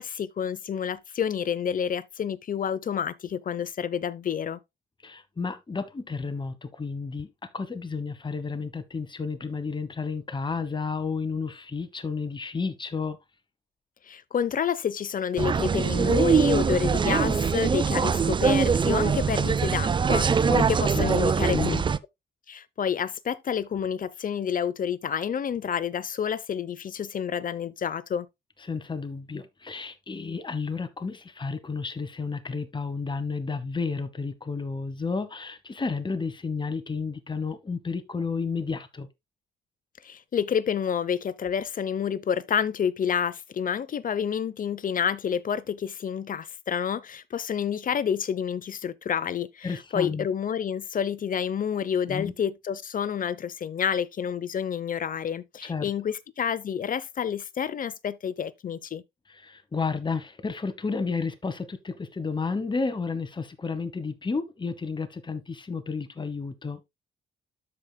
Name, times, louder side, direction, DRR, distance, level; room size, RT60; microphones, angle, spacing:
voice 1, 0.0-4.6 14.1-21.8 22.5-28.3 40.0-49.7 49.9-59.0, left 8 dB, 45° left, 0.7 m, -29 dB
voice 2, 5.0-13.2 20.4-21.8 28.6-39.1 49.6-50.3 52.1-52.3 55.6-55.9 59.3-66.8, left 4 dB, 25° left, 1.3 m, -32 dB
sound 1, 15.4-22.0, right 6 dB, 25° right, 0.4 m, -23 dB
13.0 x 5.0 x 2.2 m
cardioid pair, 90°, 20 cm